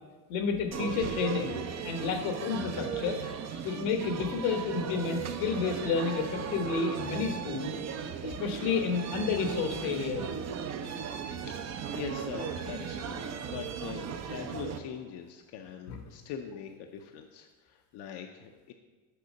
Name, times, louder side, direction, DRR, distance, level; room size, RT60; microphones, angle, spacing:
voice 1, 0.3-3.2 3.6-7.7 8.2-10.3 15.9-16.0, left 5 dB, 80° left, 5 dB, 1.3 m, -31 dB
Restaurant Ambient, 0.7-14.8, right 7 dB, 35° right, 0.6 m, -37 dB
voice 2, 11.4-18.7, left 8 dB, 60° left, 4 dB, 0.7 m, -42 dB
6.7 x 4.8 x 6.5 m, 1.4 s
cardioid pair, 120°, 45 cm